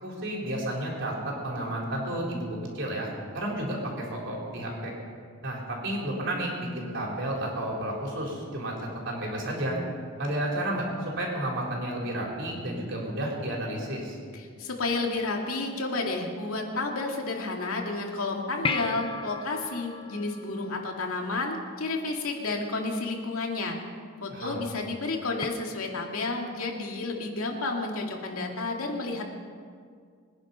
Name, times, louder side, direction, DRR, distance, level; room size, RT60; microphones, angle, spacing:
voice 1, 0.0-4.9 5.4-8.7 9.0-9.8 10.2-10.9 11.2-14.2 24.3-24.6, right 1 dB, 60° right, -2 dB, 4.1 m, -32 dB
voice 2, 14.3-23.8 24.2-29.3, left 3 dB, 85° left, 1 dB, 2.3 m, -31 dB
sound 1, 18.6-21.4 25.4-25.5, left 4 dB, 25° left, 0.8 m, -34 dB
23.0 x 10.5 x 5.6 m, 2.1 s
head